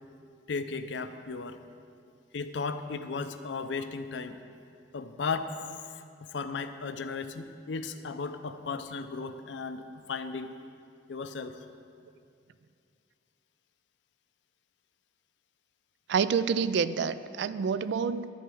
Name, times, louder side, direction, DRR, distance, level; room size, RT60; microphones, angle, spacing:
voice 1, 0.5-1.6 2.3-4.4 4.9-5.5 5.9-6.0 6.3-10.5 11.1-11.5, left 4 dB, 70° left, 9 dB, 0.5 m, -35 dB
voice 2, 16.1-18.3, right 6 dB, 65° right, 14 dB, 0.3 m, -28 dB
11.5 x 4.6 x 7.7 m, 2.4 s
head